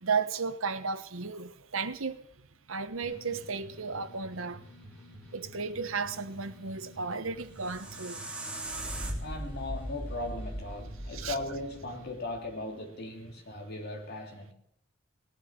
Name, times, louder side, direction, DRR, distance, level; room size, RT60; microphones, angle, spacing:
voice 1, 0.0-2.2 2.7-4.6 5.3-8.2 11.1-11.4, right 5 dB, 80° right, 1.2 m, -34 dB
sound 1, 3.0-12.1, equal, 10° left, 7.3 m, -51 dB
sound 2, 7.3-12.4, right 1 dB, 5° right, 2.7 m, -39 dB
voice 2, 9.2-14.5, left 2 dB, 50° left, 3.2 m, -38 dB
18.0 x 9.2 x 6.6 m
head